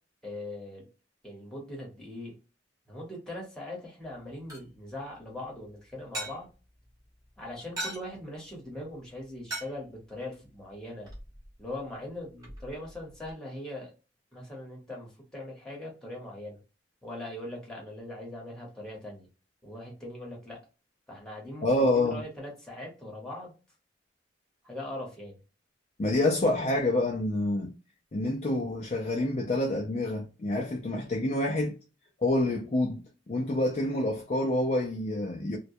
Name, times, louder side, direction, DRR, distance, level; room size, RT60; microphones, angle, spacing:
voice 1, 0.2-0.8 1.2-2.3 2.9-6.5 7.4-11.1 11.6-13.9 14.3-16.6 17.0-19.3 19.6-20.6 21.1-23.5 24.6-25.3, left 1 dB, 5° left, 1.0 m, -41 dB
sound 1, 4.0-13.3, right 1 dB, 20° right, 0.9 m, -44 dB
voice 2, 21.6-22.2 26.0-27.7 28.1-31.8 32.2-33.0 33.3-35.6, left 1 dB, 35° left, 0.4 m, -27 dB
2.2 x 2.2 x 2.6 m
head